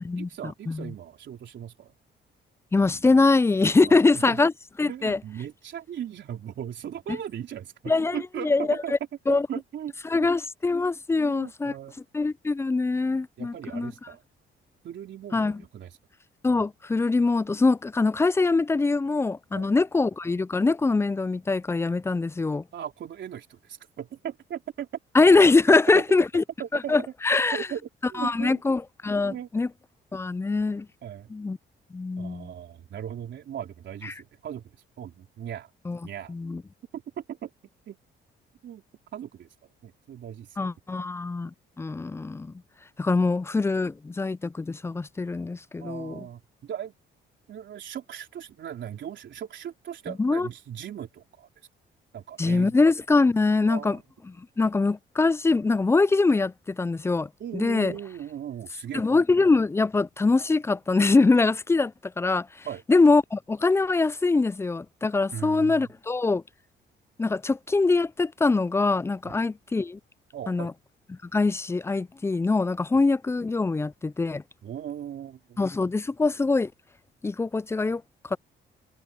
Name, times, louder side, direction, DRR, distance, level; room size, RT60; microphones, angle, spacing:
voice 1, 0.2-1.9 3.9-4.4 4.9-8.9 9.3-9.9 10.2-10.3 11.2-12.0 13.4-14.2 14.8-16.0 19.5-19.7 22.7-24.9 25.7-26.0 26.6-26.9 27.5-28.6 29.3-29.5 31.0-31.3 32.2-34.7 35.0-35.7 36.0-36.4 36.9-37.5 37.9-38.0 38.6-38.8 39.1-39.5 39.8-40.6 45.8-46.9 47.5-51.5 52.1-52.7 53.7-54.0 57.4-59.1 62.6-62.8 65.3-65.9 69.2-69.4 70.3-70.7 72.9-73.0 74.6-75.7, right 9 dB, 65° right, 3.9 m, -38 dB
voice 2, 2.7-4.5 4.8-5.2 7.9-8.2 8.4-8.7 9.3-9.5 10.1-11.7 12.1-13.9 15.3-15.6 16.4-22.6 25.1-26.4 26.9-27.6 28.2-29.7 30.1-30.9 31.3-31.6 31.9-32.5 35.9-36.0 36.3-36.6 40.6-42.5 43.0-46.1 50.2-50.5 52.4-54.0 54.3-57.9 58.9-66.4 67.2-70.0 70.5-70.7 71.3-74.4 75.6-76.7 77.2-78.0 78.3-78.4, left 3 dB, 15° left, 0.3 m, -23 dB
cardioid pair, 90°, 20 cm